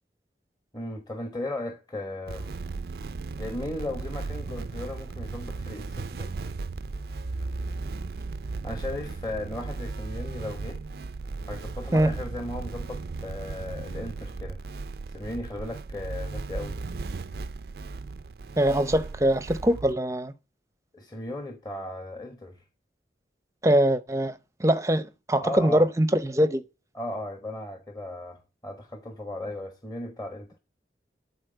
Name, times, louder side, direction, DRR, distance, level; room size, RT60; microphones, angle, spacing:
voice 1, 0.7-2.5 3.4-6.3 8.6-10.8 11.5-14.6 15.1-16.8 20.9-22.6 25.4-25.9 26.9-30.6, left 1 dB, 20° left, 1.1 m, -36 dB
sound 1, 2.3-19.9, right 3 dB, 60° right, 0.4 m, -36 dB
voice 2, 18.6-20.3 23.6-26.6, right 1 dB, 15° right, 0.6 m, -23 dB
11.5 x 4.2 x 6.7 m
head